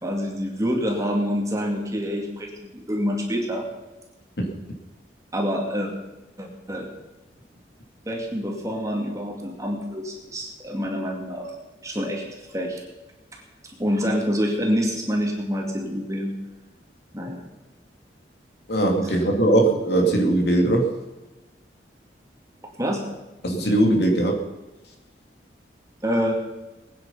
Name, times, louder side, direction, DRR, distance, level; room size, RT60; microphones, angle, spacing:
voice 1, 0.0-3.7 5.3-5.9 6.4-6.9 8.1-11.5 11.8-12.8 13.8-16.3 17.1-17.4 22.8-23.0 26.0-26.3, equal, 20° right, 0 dB, 2.4 m, -26 dB
voice 2, 18.7-20.9 23.4-24.4, right 1 dB, 65° left, 2 dB, 2.7 m, -20 dB
21.0 x 9.5 x 5.7 m, 1.1 s
head